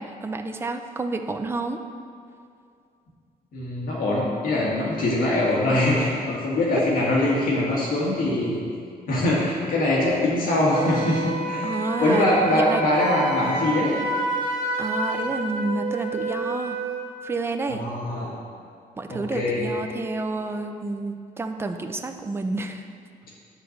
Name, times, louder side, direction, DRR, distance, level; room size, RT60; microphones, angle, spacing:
voice 1, 0.0-1.8 11.6-12.8 14.8-16.8 17.2-17.8 19.0-22.8, right 3 dB, 15° right, 6 dB, 0.4 m, -29 dB
voice 2, 3.5-8.6 9.1-11.7 12.0-13.9 17.7-18.3 19.1-19.7, left 1 dB, 60° left, -5 dB, 1.8 m, -23 dB
Wind instrument woodwind instrument, 10.7-17.1, right 2 dB, 30° right, 1.3 m, -29 dB
10.0 x 4.0 x 6.5 m, 2.4 s
cardioid pair, 165°, 16 cm